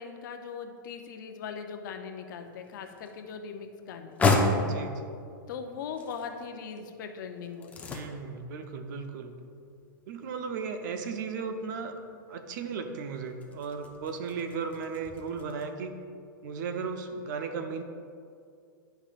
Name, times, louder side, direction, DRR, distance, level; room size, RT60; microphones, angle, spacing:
voice 1, 0.0-4.2 5.5-8.0, left 6 dB, 65° left, 5 dB, 0.7 m, -40 dB
sound 1, 2.4-15.6, left 2 dB, 15° left, 0.6 m, -35 dB
voice 2, 4.6-5.1 7.9-9.3 10.1-11.9 12.3-16.0 16.4-17.8, right 5 dB, 60° right, 7 dB, 0.7 m, -36 dB
10.0 x 5.4 x 2.5 m, 2.4 s
hypercardioid pair, 135°, 11 cm